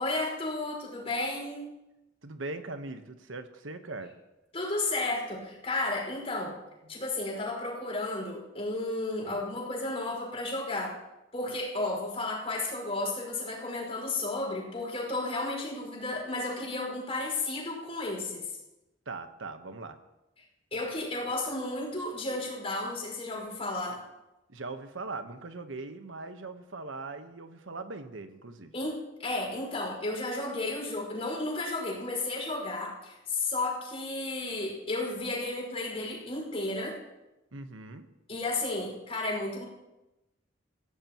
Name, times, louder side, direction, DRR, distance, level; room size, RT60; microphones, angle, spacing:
voice 1, 0.0-1.7 4.5-6.6 6.9-11.0 11.3-18.5 20.7-24.0 28.7-37.0 38.3-39.6, left 2 dB, 30° left, -2 dB, 5.5 m, -33 dB
voice 2, 2.2-4.1 6.8-7.0 9.2-9.4 19.1-20.0 24.5-28.7 37.5-38.1, right 3 dB, 90° right, 8 dB, 1.2 m, -40 dB
25.0 x 16.0 x 3.1 m, 0.98 s
head